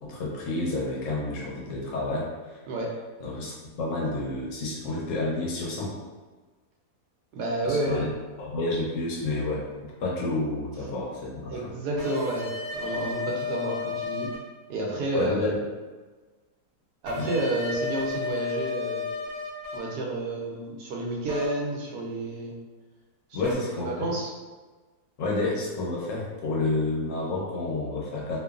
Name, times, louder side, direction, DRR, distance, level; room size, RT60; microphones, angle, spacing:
voice 1, 0.0-2.6 3.2-5.9 7.6-8.1 8.4-9.7 10.0-11.7 15.1-15.6 17.2-17.3 23.3-24.1 25.2-28.4, left 2 dB, 65° left, -4 dB, 0.8 m, -30 dB
voice 2, 7.3-8.1 11.5-14.3 14.7-15.5 17.0-19.0 19.7-22.6 23.3-23.6 23.8-24.3, right 2 dB, 80° right, -2 dB, 1.2 m, -30 dB
sound 1, 12.0-14.4 17.1-19.8 21.3-21.5 23.4-23.5, left 4 dB, 55° right, 0.9 m, -33 dB
2.9 x 2.2 x 2.3 m, 1.3 s
omnidirectional pair, 1.7 m